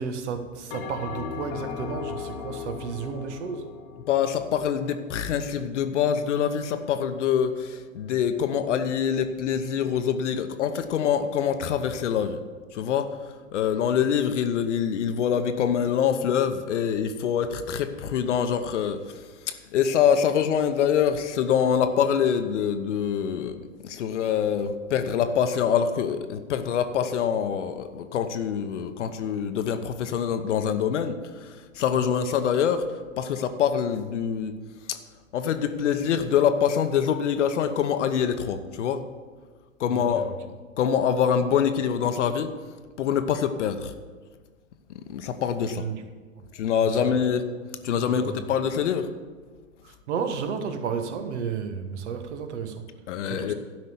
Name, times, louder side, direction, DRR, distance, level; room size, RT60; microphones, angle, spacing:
voice 1, 0.0-3.7 32.0-32.1 39.9-40.3 45.7-46.0 46.4-46.5 46.9-47.2 48.0-48.5 49.8-52.9 53.2-53.5, right 6 dB, 60° right, 7 dB, 1.4 m, -33 dB
Bell, 0.7-5.3, left 7 dB, 45° left, 1.3 m, -37 dB
voice 2, 4.1-12.4 12.7-13.1 13.5-23.6 23.8-32.9 33.2-34.5 34.9-35.0 35.3-39.0 39.8-40.3 40.8-42.5 43.0-43.9 44.9-45.8 46.5-47.4 47.8-49.1 53.1-53.5, left 8 dB, 60° left, 9 dB, 1.0 m, -25 dB
12.0 x 5.4 x 7.0 m, 1.4 s
hypercardioid pair, 120°, 40 cm